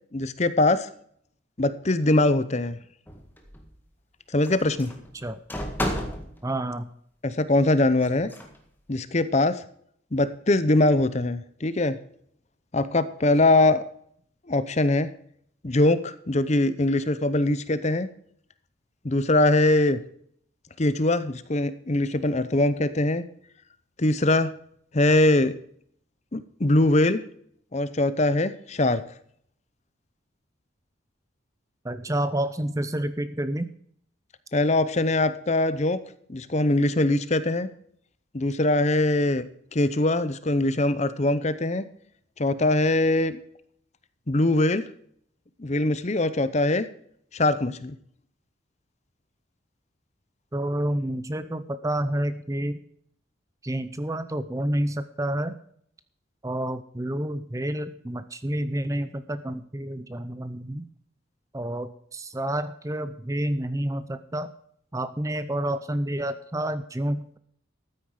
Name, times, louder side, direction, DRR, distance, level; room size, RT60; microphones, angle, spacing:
voice 1, 0.1-0.9 1.6-2.8 4.3-4.9 7.2-8.3 8.9-9.6 10.1-12.0 12.7-13.9 14.5-15.1 15.6-18.1 19.0-20.0 20.8-23.2 24.0-24.5 24.9-25.5 26.3-27.2 27.7-29.0 34.5-36.0 36.3-37.7 38.3-39.5 39.7-41.9 42.4-43.4 44.3-44.8 45.6-46.9 47.3-47.9, left 2 dB, 35° left, 14 dB, 0.7 m, -22 dB
sound 1, 3.1-3.7 4.4-6.4 8.0-8.6, equal, 10° left, 1.7 m, -32 dB
voice 2, 6.4-6.9 31.8-33.7 50.5-52.8 53.6-55.6 56.4-60.9 61.5-64.5 64.9-67.4, right 1 dB, 15° right, 12 dB, 0.6 m, -29 dB
13.5 x 9.3 x 4.9 m, 0.65 s
head